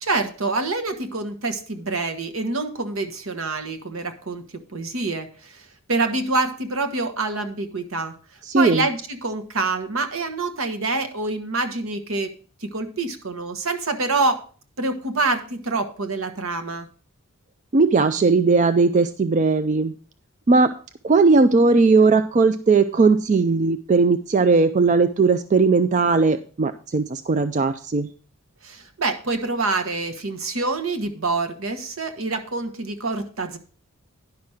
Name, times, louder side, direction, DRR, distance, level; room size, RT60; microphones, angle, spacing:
voice 1, 0.0-8.1 8.5-12.3 12.6-14.4 14.8-16.9 28.6-33.6, right 3 dB, 70° right, 8 dB, 1.2 m, -26 dB
voice 2, 8.5-8.9 17.7-19.9 20.5-20.7 21.0-28.1, right 4 dB, 35° right, 9 dB, 0.4 m, -18 dB
10.5 x 5.9 x 4.8 m, 0.40 s
head